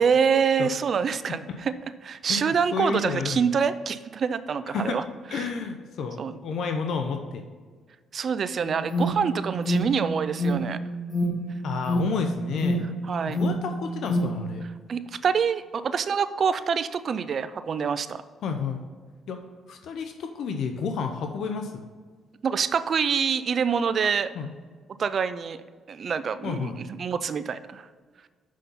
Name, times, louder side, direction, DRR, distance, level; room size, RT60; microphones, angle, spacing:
voice 1, 0.0-1.7 2.0-5.0 5.3-5.5 6.2-6.4 8.1-10.8 13.1-13.4 14.9-18.2 22.4-24.3 25.0-27.9, right 6 dB, 50° right, 13 dB, 0.5 m, -26 dB
voice 2, 2.3-3.4 4.7-5.0 5.3-7.4 11.6-12.9 13.3-14.6 18.4-18.8 19.3-19.4 19.7-21.8 24.3-24.5 26.4-26.8, left 5 dB, 70° left, 5 dB, 0.7 m, -30 dB
Alarm, 8.6-14.5, equal, 20° left, 2.5 m, -28 dB
6.4 x 5.5 x 5.4 m, 1.5 s
cardioid pair, 90°, 0 cm